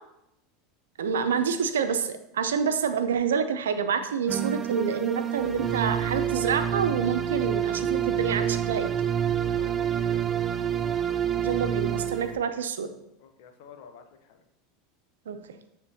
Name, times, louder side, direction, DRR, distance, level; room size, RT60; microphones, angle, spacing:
voice 1, 1.0-8.9 11.4-12.9 15.3-15.4, right 6 dB, 85° right, 9 dB, 0.5 m, -27 dB
sound 1, 4.3-12.4, right 9 dB, 25° right, 0.4 m, -27 dB
voice 2, 9.5-10.3 13.2-14.4, left 7 dB, 65° left, 6 dB, 0.8 m, -50 dB
9.4 x 3.5 x 2.9 m, 0.82 s
hypercardioid pair, 90°, 0 cm